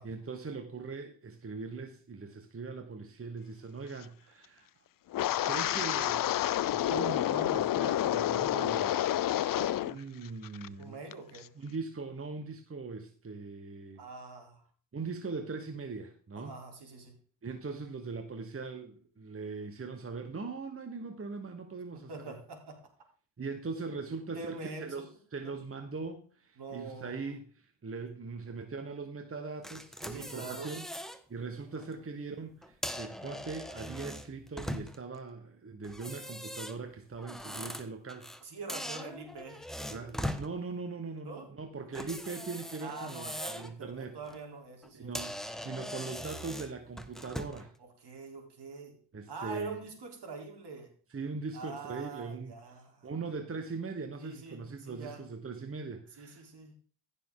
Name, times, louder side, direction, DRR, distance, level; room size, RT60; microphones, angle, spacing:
voice 1, 0.0-4.7 5.4-6.4 6.7-9.1 9.8-11.0 11.6-14.0 14.9-16.5 17.4-22.3 23.4-30.9 31.3-38.3 39.9-44.2 44.9-47.7 49.1-49.8 51.1-52.6 53.0-56.5, right 4 dB, 30° right, 6 dB, 1.3 m, -40 dB
Wind, 5.1-10.0 10.2-10.7 11.1-11.4, left 12 dB, 50° left, 0.5 m, -29 dB
voice 2, 9.4-9.8 10.8-11.5 14.0-14.6 16.4-17.1 21.9-22.9 24.3-25.0 26.6-27.3 30.1-30.7 38.4-40.0 41.2-41.5 41.8-42.1 42.8-45.1 45.8-46.2 47.8-49.0 49.3-50.9 51.5-53.1 54.2-55.2 56.2-56.7, right 4 dB, 65° right, 2 dB, 3.8 m, -45 dB
sound 1, 29.6-31.2 31.6-31.8 32.6-35.2 35.8-38.4 38.7-40.5 41.9-43.7 44.1-44.4 44.8-44.9 45.1-47.7, equal, ahead, 1.2 m, -41 dB
15.0 x 6.8 x 3.8 m, 0.42 s
cardioid pair, 65°, 44 cm